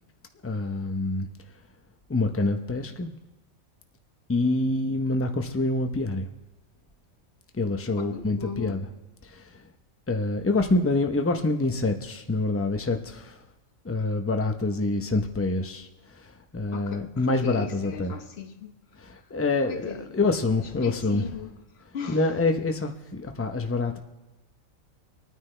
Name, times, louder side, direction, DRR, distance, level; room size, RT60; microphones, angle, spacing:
voice 1, 0.4-1.3 2.1-3.1 4.3-6.3 7.5-8.8 9.2-9.6 10.1-13.4 13.8-18.1 19.0-21.2 22.1-24.0, left 2 dB, 15° left, 5 dB, 0.6 m, -26 dB
voice 2, 7.9-8.8 16.7-18.7 19.0-19.2 19.6-20.2 20.8-22.3, left 6 dB, 55° left, 5 dB, 1.3 m, -38 dB
26.5 x 9.5 x 3.3 m, 1.0 s
omnidirectional pair, 1.4 m